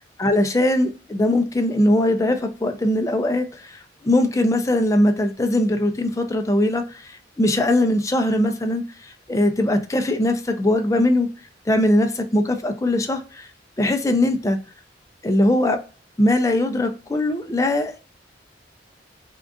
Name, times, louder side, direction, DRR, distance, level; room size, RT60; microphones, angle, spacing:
voice 1, 0.2-11.3 11.7-13.5 13.8-14.6 15.2-15.8 16.2-18.0, left 1 dB, 20° left, 0.5 m, -21 dB
3.6 x 2.5 x 3.5 m
head